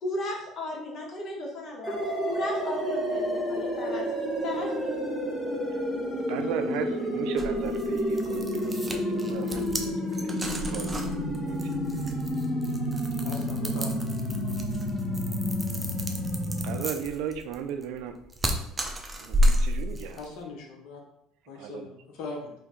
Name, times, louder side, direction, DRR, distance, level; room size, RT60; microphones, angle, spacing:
voice 1, 0.0-4.0 4.4-4.9, left 1 dB, 50° left, -1 dB, 1.2 m, -35 dB
sound 1, 1.8-16.7, equal, 15° left, 1.2 m, -30 dB
voice 2, 6.3-9.7 10.1-10.3 10.7-11.8 16.6-18.2 19.2-20.2 21.6-21.9, right 8 dB, 75° right, 8 dB, 0.3 m, -36 dB
sound 2, 7.4-20.3, equal, 20° right, 0.5 m, -31 dB
voice 3, 13.2-14.0 20.1-21.0 21.5-22.5, left 3 dB, 75° left, 1 dB, 0.8 m, -40 dB
2.8 x 2.7 x 3.7 m, 0.79 s
supercardioid pair, 90°, 0 cm